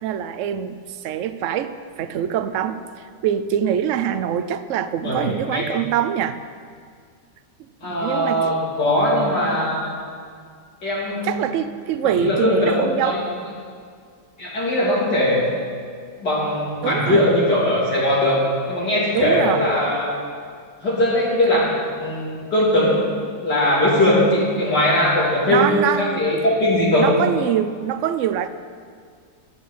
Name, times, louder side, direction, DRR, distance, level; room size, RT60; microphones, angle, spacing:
voice 1, 0.0-6.4 7.8-8.5 11.2-13.2 16.8-17.2 19.1-19.7 21.5-21.6 25.5-26.3 26.9-28.5, right 9 dB, 65° right, 11 dB, 0.8 m, -24 dB
voice 2, 5.0-5.7 7.8-9.9 10.8-11.3 12.0-13.2 14.4-15.4 16.2-18.4 18.7-20.1 20.8-21.7 22.0-27.1, left 1 dB, 80° left, -6 dB, 3.8 m, -20 dB
17.5 x 11.5 x 4.2 m, 2.1 s
omnidirectional pair, 1.8 m